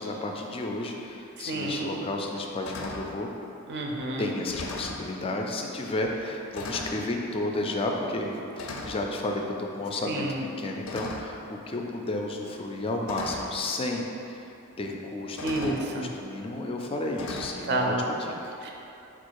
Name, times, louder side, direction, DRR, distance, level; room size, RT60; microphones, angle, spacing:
voice 1, 0.0-3.3 4.2-14.1 14.4-14.5 14.8-18.6, left 2 dB, 25° left, 1 dB, 0.3 m, -32 dB
voice 2, 1.5-1.9 3.7-4.3 10.1-10.4 15.4-16.1 17.7-18.0 18.6-18.7, right 2 dB, 55° right, 0 dB, 0.5 m, -29 dB
sound 1, 1.6-1.7 2.2-2.4 2.6-3.1 4.0-4.1 4.4-5.1 6.0-6.2 6.5-7.0 8.0-8.2 8.6-9.1 10.8-11.4 12.5-12.6 13.1-13.5 14.7-14.8 15.4-15.9 17.2-17.5, left 3 dB, 90° left, 0.4 m, -38 dB
4.5 x 2.4 x 4.5 m, 2.8 s
head